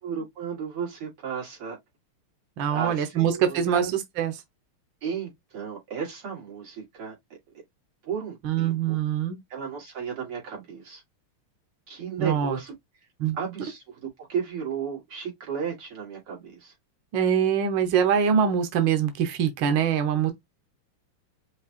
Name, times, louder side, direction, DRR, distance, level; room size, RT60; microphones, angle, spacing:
voice 1, 0.0-1.8 2.7-3.9 5.0-7.2 8.0-9.0 9.5-11.0 11.9-12.7 13.4-16.7, right 7 dB, 90° right, 3.2 m, -34 dB
voice 2, 2.6-3.9 4.2-4.3 8.4-9.4 12.2-12.6 13.2-13.4 17.1-20.3, right 8 dB, 65° right, 1.4 m, -23 dB
5.6 x 2.8 x 2.4 m
omnidirectional pair, 2.4 m